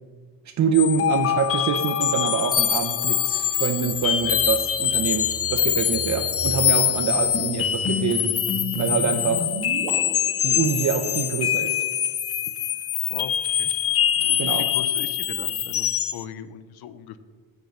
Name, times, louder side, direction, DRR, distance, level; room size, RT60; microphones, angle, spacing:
voice 1, 0.5-8.3 8.8-9.5 10.4-11.8 14.4-14.7, right 7 dB, 45° right, 7 dB, 0.7 m, -25 dB
sound 1, 0.7-16.2, left 10 dB, 35° left, 0.5 m, -24 dB
sound 2, 3.9-9.9, right 1 dB, 90° right, 2.5 m, -37 dB
voice 2, 14.2-17.2, left 9 dB, 70° left, 14 dB, 0.7 m, -38 dB
8.2 x 6.9 x 6.5 m, 1.5 s
cardioid pair, 130°, 39 cm